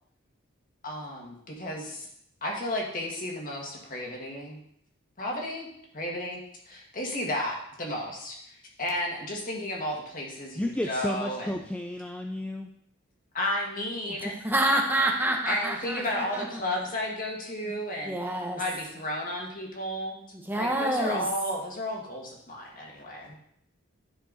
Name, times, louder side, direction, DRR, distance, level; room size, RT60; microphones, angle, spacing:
voice 1, 0.8-2.1 2.4-4.6 5.2-5.7 5.9-6.4 6.7-8.4 8.8-11.6 13.3-14.4 15.4-18.2 18.6-20.2 20.5-23.4, left 1 dB, 45° left, -1 dB, 1.8 m, -33 dB
voice 2, 10.6-12.7, left 1 dB, 5° left, 3 dB, 0.3 m, -32 dB
voice 3, 14.4-16.5 18.0-18.6 20.5-21.3, right 1 dB, 10° right, 1 dB, 0.8 m, -27 dB
10.5 x 4.6 x 4.0 m, 0.70 s
head